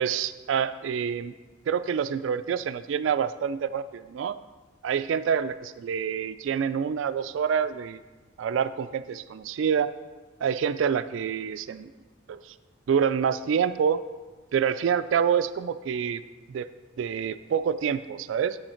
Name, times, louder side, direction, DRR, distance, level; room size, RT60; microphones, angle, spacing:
voice 1, 0.0-1.3 1.7-4.4 4.8-8.0 8.4-9.9 10.4-11.9 12.3-12.5 12.9-14.0 14.5-16.2 16.5-16.7 17.0-18.6, right 7 dB, 75° right, 11 dB, 0.3 m, -27 dB
8.8 x 7.2 x 4.4 m, 1.3 s
head